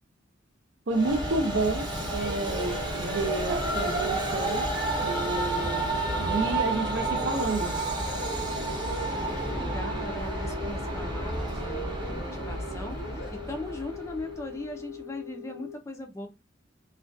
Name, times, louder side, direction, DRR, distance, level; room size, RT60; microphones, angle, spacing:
Train, 0.9-14.4, right 2 dB, 25° right, 0.7 m, -31 dB
voice 1, 0.9-4.7 5.0-5.9 6.2-7.7, right 2 dB, 80° right, 0.6 m, -30 dB
sound 1, 2.0-15.7, equal, 65° left, 0.6 m, -40 dB
voice 2, 9.0-16.3, left 2 dB, 15° left, 0.4 m, -39 dB
2.4 x 2.1 x 2.5 m
head